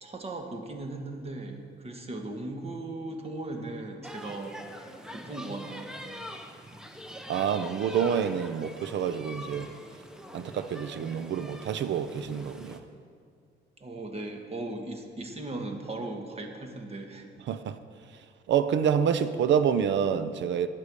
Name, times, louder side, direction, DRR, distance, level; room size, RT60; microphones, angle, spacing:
voice 1, 0.0-4.6 5.1-5.9 13.8-17.3, right 2 dB, 30° right, 1.5 m, -38 dB
sound 1, 4.0-12.8, equal, 5° right, 0.9 m, -44 dB
voice 2, 7.3-9.7 10.3-12.8 17.5-17.8 18.5-20.7, right 8 dB, 65° right, 0.6 m, -27 dB
9.9 x 8.1 x 6.8 m
cardioid pair, 90°, 20 cm